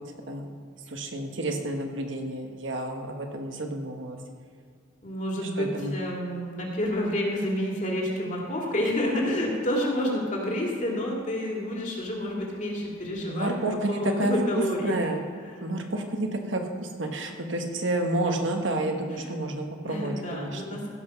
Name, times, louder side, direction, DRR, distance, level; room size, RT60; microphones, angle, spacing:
voice 1, 0.9-4.2 5.6-5.9 13.3-15.2 15.6-20.6, right 1 dB, 75° right, 3 dB, 1.4 m, -30 dB
voice 2, 5.0-13.6 13.9-15.0 15.5-15.6 19.1-19.3 19.8-20.9, left 1 dB, 40° left, -2 dB, 2.5 m, -29 dB
16.0 x 5.9 x 5.9 m, 2.1 s
head